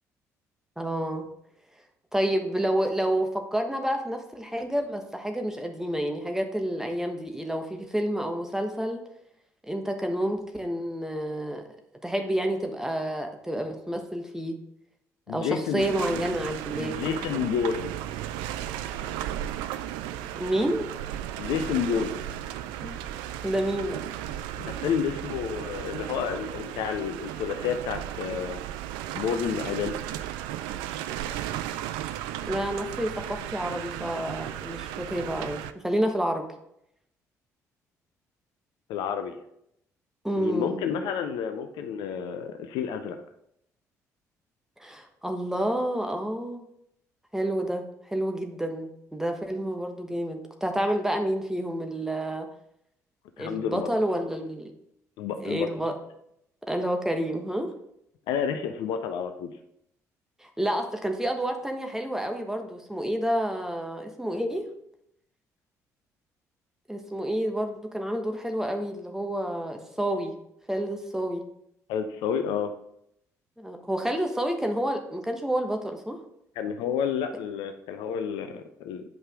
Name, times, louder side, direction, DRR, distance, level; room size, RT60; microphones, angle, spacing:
voice 1, 0.8-1.2 2.1-9.0 9.7-11.6 12.0-14.6 15.3-16.9 17.3-17.4 20.3-20.9 22.8-23.0 23.4-24.0 32.5-36.4 40.2-40.8 44.8-46.6 47.3-52.5 53.4-54.7 55.4-55.9 56.7-57.7 60.4-64.6 66.9-70.3 70.7-71.4 73.6-76.2, right 1 dB, 5° right, 4 dB, 1.3 m, -29 dB
voice 2, 15.3-16.2 16.8-18.0 21.4-22.2 24.6-28.6 29.1-29.9 38.9-39.4 40.4-43.2 53.4-53.9 55.2-55.7 58.3-59.5 71.9-72.7 76.6-79.0, left 7 dB, 60° left, 7 dB, 0.6 m, -30 dB
sound 1, 15.8-35.7, right 12 dB, 65° right, 0.4 m, -35 dB
9.1 x 5.5 x 3.6 m, 0.76 s
figure-of-eight pair, 45°, 9 cm